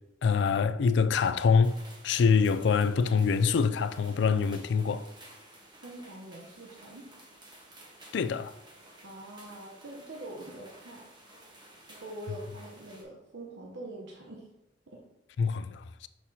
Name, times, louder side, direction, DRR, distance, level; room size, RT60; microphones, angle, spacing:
voice 1, 0.2-1.8 2.0-5.1 8.1-8.5 15.4-16.1, left 5 dB, 70° left, 0.3 m, -25 dB
sound 1, 1.6-13.0, right 1 dB, 25° right, 1.2 m, -53 dB
voice 2, 5.8-7.1 9.0-11.0 12.0-14.5 14.9-15.0, right 1 dB, 75° right, 0.9 m, -44 dB
6.3 x 5.6 x 2.8 m
head